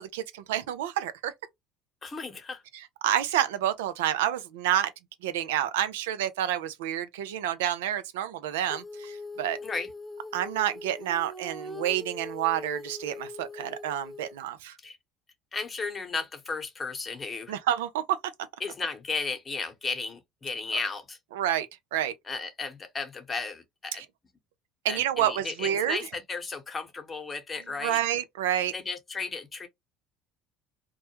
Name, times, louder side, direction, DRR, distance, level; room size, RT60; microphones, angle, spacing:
voice 1, 0.0-1.3 3.0-4.9 5.2-9.6 10.3-14.8 17.5-18.2 21.3-21.7 21.9-22.1 23.9-24.1 24.8-26.0 27.8-28.7, right 11 dB, 85° right, 0.3 m, -28 dB
voice 2, 2.0-2.6 9.6-9.9 14.8-15.0 15.5-17.5 18.6-21.2 22.3-24.0 24.9-28.0 28.7-29.7, left 4 dB, 30° left, 0.9 m, -34 dB
Female singing, 8.7-14.4, left 2 dB, ahead, 0.5 m, -41 dB
2.2 x 2.1 x 2.9 m
hypercardioid pair, 75°, 0 cm